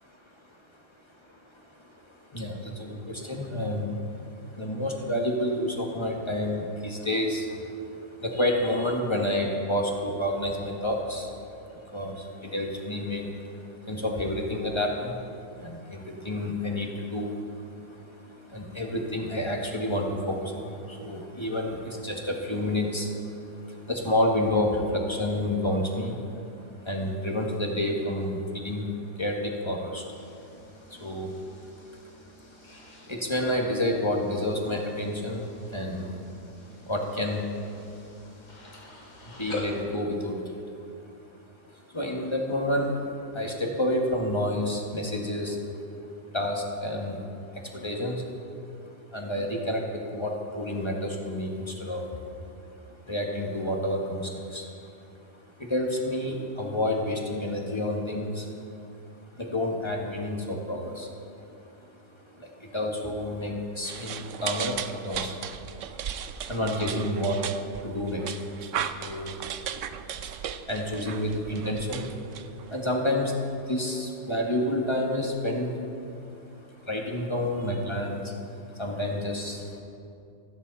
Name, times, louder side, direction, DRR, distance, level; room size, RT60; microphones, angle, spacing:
voice 1, 1.3-31.8 32.1-32.2 32.5-36.2 36.6-37.6 37.9-38.0 38.6-38.7 39.0-40.8 41.7-45.8 46.3-48.2 48.9-52.2 53.0-54.7 55.6-58.7 59.3-61.4 61.8-62.0 62.3-65.4 65.8-68.4 68.6-69.6 70.1-76.2 76.6-79.8, left 1 dB, 20° left, 0 dB, 1.6 m, -30 dB
sound 1, 30.1-39.8, left 3 dB, 85° left, 3.0 m, -45 dB
sound 2, 63.8-72.9, right 9 dB, 65° right, 0.9 m, -36 dB
27.0 x 9.8 x 4.2 m, 2.6 s
omnidirectional pair, 1.6 m